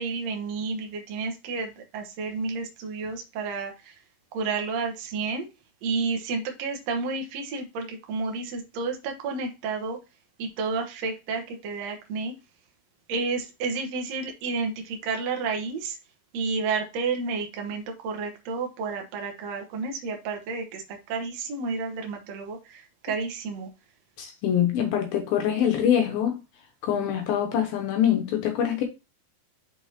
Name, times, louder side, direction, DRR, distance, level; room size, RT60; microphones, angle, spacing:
voice 1, 0.0-3.9 4.3-5.5 5.8-10.0 10.4-12.3 13.1-16.0 16.3-23.7, right 4 dB, 65° right, 1.7 m, -31 dB
voice 2, 24.2-26.4 26.8-28.8, left 9 dB, 75° left, 2.5 m, -24 dB
6.4 x 5.3 x 2.8 m
omnidirectional pair, 4.6 m